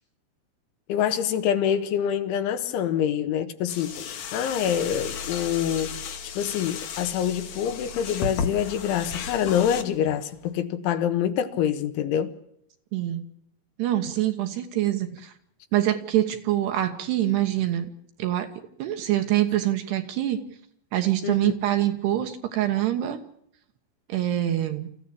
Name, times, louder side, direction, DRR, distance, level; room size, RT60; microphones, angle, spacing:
voice 1, 0.9-5.9 6.4-12.3 21.2-21.6, left 9 dB, 75° left, 3.7 m, -26 dB
sound 1, 3.7-10.5, left 6 dB, 55° left, 2.3 m, -34 dB
voice 2, 12.9-13.3 13.8-15.3 15.7-17.9 18.2-18.5 18.8-20.4 20.9-23.2 24.1-24.9, right 13 dB, 65° right, 3.1 m, -25 dB
26.0 x 15.5 x 8.6 m
omnidirectional pair, 5.6 m